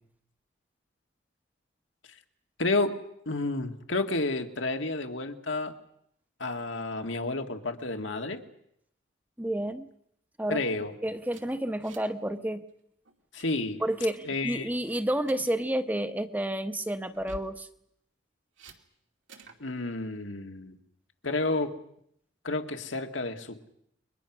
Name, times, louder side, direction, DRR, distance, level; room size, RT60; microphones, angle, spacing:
voice 1, 2.6-3.0 3.3-5.7 6.4-8.4 10.5-10.9 13.3-13.8 14.3-14.7 19.6-20.8 21.2-21.8 22.4-23.7, left 2 dB, 85° left, 5 dB, 2.1 m, -30 dB
voice 2, 9.4-9.9 10.4-10.6 11.0-12.6 13.8-17.7, right 1 dB, 10° right, 8 dB, 1.0 m, -30 dB
sound 1, 11.3-12.2 12.5-12.7 13.1-13.5 14.0-14.4 14.9-15.6 17.1-17.6 18.6-18.8 19.3-19.6, right 2 dB, 85° right, 2.5 m, -49 dB
30.0 x 23.0 x 6.1 m, 0.73 s
head